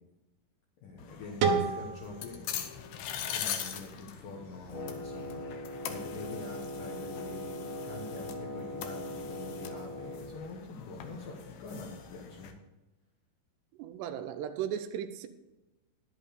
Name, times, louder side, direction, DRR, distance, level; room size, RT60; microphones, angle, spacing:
voice 1, 0.8-2.4 3.3-5.6 5.9-12.5, left 3 dB, 65° left, -1 dB, 2.5 m, -45 dB
sound 1, 1.0-12.5, left 8 dB, 90° left, 1.7 m, -42 dB
sound 2, 1.4-4.3, right 5 dB, 70° right, 2.2 m, -33 dB
Wind instrument woodwind instrument, 4.7-10.4, equal, 25° left, 1.1 m, -40 dB
voice 2, 13.8-15.3, right 9 dB, 90° right, 8 dB, 2.8 m, -36 dB
11.0 x 8.0 x 5.0 m, 1.0 s
omnidirectional pair, 4.8 m